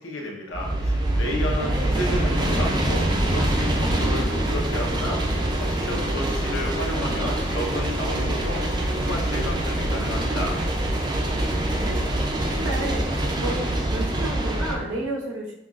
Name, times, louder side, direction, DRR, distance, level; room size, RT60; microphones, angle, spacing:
voice 1, 0.0-5.2 5.6-10.6, equal, 85° left, -1 dB, 0.8 m, -32 dB
sound 1, 0.5-14.8, right 1 dB, 20° right, 0.3 m, -25 dB
voice 2, 1.6-2.0 11.7-12.0 12.6-13.1 13.4-15.6, right 1 dB, 80° right, -2 dB, 0.9 m, -31 dB
sound 2, 1.9-10.6, equal, 55° right, 0.6 m, -39 dB
sound 3, 9.2-15.0, left 1 dB, 65° left, 1.1 m, -42 dB
5.6 x 2.3 x 2.4 m, 0.85 s
head